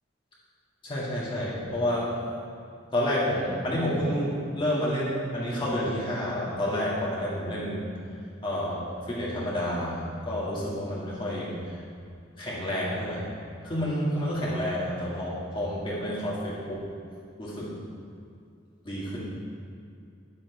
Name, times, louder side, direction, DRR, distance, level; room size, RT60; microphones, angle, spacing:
voice 1, 0.8-2.2 2.9-7.9 8.4-11.8 12.4-13.3 13.6-16.9 17.4-17.8 18.8-19.2, equal, 25° left, -7 dB, 1.8 m, -29 dB
10.5 x 7.5 x 4.7 m, 2.4 s
head